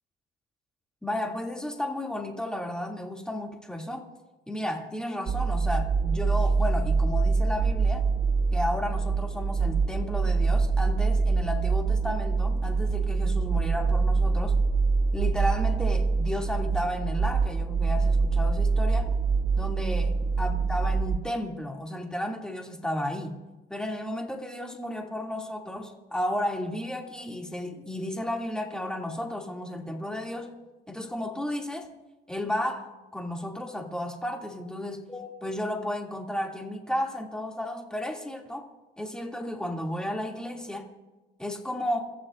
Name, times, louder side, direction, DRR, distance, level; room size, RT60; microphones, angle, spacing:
voice 1, 1.0-4.1 4.5-8.1 8.5-14.6 15.1-19.1 19.6-23.3 23.7-30.5 30.9-31.9 32.3-38.7 39.0-40.9 41.4-42.1, left 1 dB, 5° left, 1 dB, 2.4 m, -33 dB
sound 1, 5.3-21.2, right 4 dB, 30° right, 0.4 m, -25 dB
28.5 x 14.5 x 2.5 m, 1.1 s
cardioid pair, 110°, 17 cm